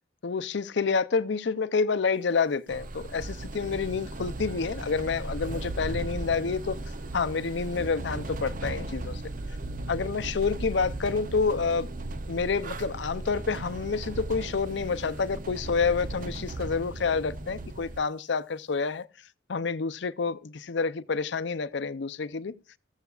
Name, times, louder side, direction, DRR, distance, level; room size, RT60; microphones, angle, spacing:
voice 1, 0.2-6.8 7.1-9.2 9.9-11.9 12.3-19.1 19.5-22.5, left 5 dB, 65° left, 0.5 m, -28 dB
sound 1, 2.7-18.0, right 2 dB, 45° right, 0.6 m, -36 dB
14.5 x 14.0 x 2.4 m
head